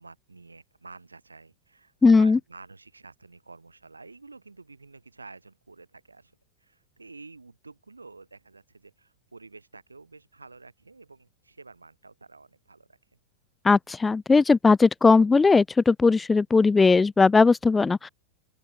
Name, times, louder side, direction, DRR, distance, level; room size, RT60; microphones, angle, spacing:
voice 1, 0.0-13.0, right 3 dB, 80° right, 5.3 m, -49 dB
voice 2, 2.0-2.4 13.6-18.1, left 4 dB, 10° left, 0.4 m, -18 dB
open air
figure-of-eight pair, 90°, 0 cm